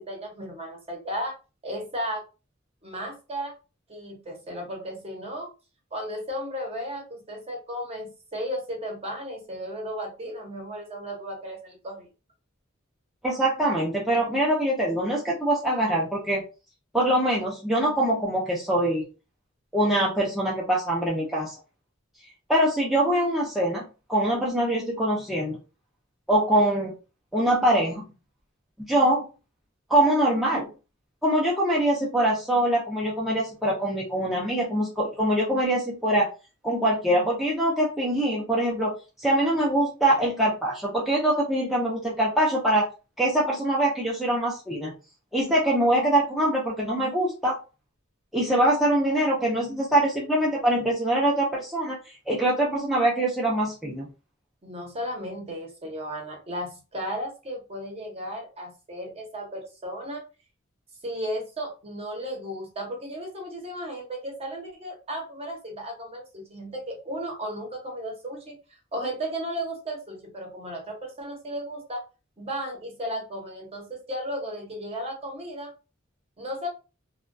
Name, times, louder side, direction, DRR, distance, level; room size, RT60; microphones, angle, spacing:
voice 1, 0.0-1.3 1.6-2.2 2.8-3.5 3.9-5.5 5.9-12.1 54.6-60.2 61.0-68.6 68.9-72.0 72.4-75.7 76.4-76.7, equal, 30° right, 1 dB, 0.8 m, -34 dB
voice 2, 13.2-16.4 16.9-19.0 19.7-21.5 22.5-25.6 26.3-26.9 27.3-28.1 28.8-29.2 29.9-30.7 31.2-36.3 36.6-38.9 39.2-42.8 43.2-44.9 45.3-47.6 48.3-52.0 52.3-54.1, right 1 dB, ahead, -5 dB, 0.5 m, -23 dB
2.2 x 2.2 x 2.5 m, 0.32 s
head